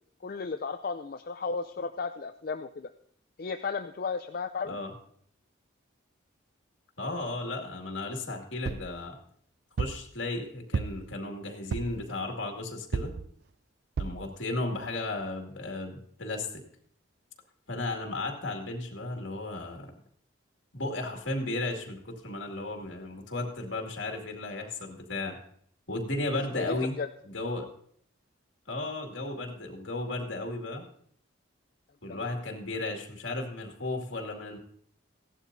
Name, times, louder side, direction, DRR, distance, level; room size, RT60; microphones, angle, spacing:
voice 1, 0.2-2.9 3.4-4.8 14.0-14.2 26.5-27.1 32.1-32.2, left 4 dB, 45° left, 7 dB, 0.4 m, -34 dB
voice 2, 7.0-9.2 9.8-13.1 14.0-16.6 17.7-19.9 20.7-25.4 25.9-27.0 27.2-27.7 28.7-30.8 32.0-34.6, left 2 dB, 65° left, 2 dB, 2.3 m, -34 dB
sound 1, 8.6-8.9 9.8-10.1 10.7-11.1 11.7-12.0 12.9-13.3 14.0-14.2 14.8-14.9 15.2-15.3, right 5 dB, 50° right, 0.4 m, -32 dB
16.5 x 11.5 x 2.7 m, 0.63 s
head